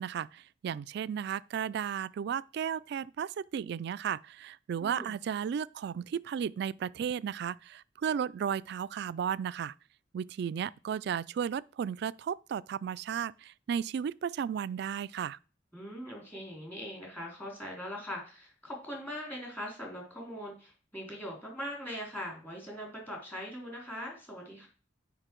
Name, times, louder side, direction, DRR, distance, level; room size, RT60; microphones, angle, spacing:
voice 1, 0.0-9.7 10.1-15.4, right 8 dB, 65° right, 0.3 m, -34 dB
voice 2, 4.8-5.2 15.7-24.7, equal, 10° left, 3.4 m, -41 dB
8.7 x 5.3 x 4.5 m
head